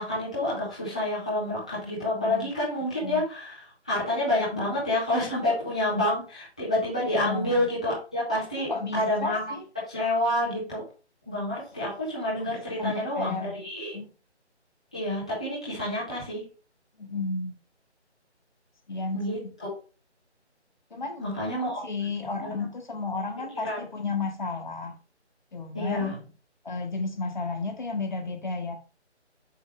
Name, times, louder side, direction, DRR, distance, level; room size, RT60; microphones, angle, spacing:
voice 1, 0.0-9.4 9.9-10.8 11.3-13.9 14.9-16.4 19.1-19.7 21.2-21.8 22.4-22.6 23.6-23.8 25.7-26.1, left 1 dB, 5° left, -11 dB, 0.9 m, -28 dB
voice 2, 2.1-2.5 3.0-3.2 7.0-7.7 8.7-9.7 11.5-11.6 12.4-12.5 12.8-13.6 13.9-14.1 17.0-17.5 18.9-19.5 20.9-24.9 25.5-26.2 26.6-28.7, left 3 dB, 40° left, 4 dB, 1.5 m, -33 dB
6.9 x 6.6 x 3.3 m, 0.34 s
figure-of-eight pair, 175°, 35 cm